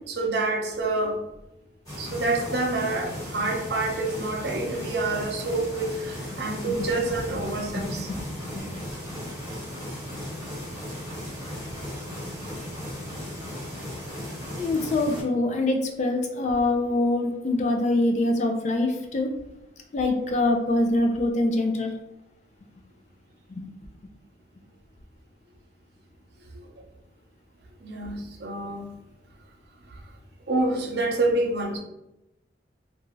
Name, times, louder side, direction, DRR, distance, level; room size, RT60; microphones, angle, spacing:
voice 1, 0.1-1.2 2.0-8.1 26.5-26.7 27.8-28.9 30.5-31.8, right 2 dB, 60° right, 1 dB, 0.5 m, -27 dB
sound 1, 1.9-15.2, left 1 dB, 20° left, 1.1 m, -36 dB
voice 2, 6.7-7.1 7.5-8.8 9.1-9.2 14.2-14.3 14.6-19.3 19.9-21.9 23.5-23.7, left 2 dB, 40° left, 3 dB, 0.3 m, -25 dB
2.5 x 2.3 x 3.0 m, 0.90 s
head